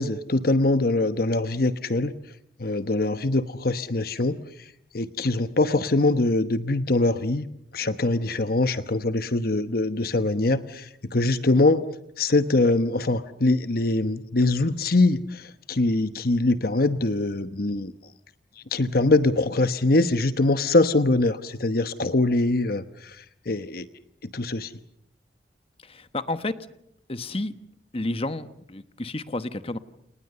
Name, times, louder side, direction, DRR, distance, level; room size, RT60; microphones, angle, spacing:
voice 1, 0.0-2.1 2.6-7.5 7.7-11.9 12.2-17.9 18.6-23.9 24.2-24.7, left 2 dB, 55° left, 11 dB, 1.0 m, -23 dB
voice 2, 25.8-26.6 27.1-27.5 27.9-29.8, left 2 dB, 35° left, 11 dB, 1.3 m, -31 dB
29.5 x 29.0 x 6.8 m, 0.76 s
head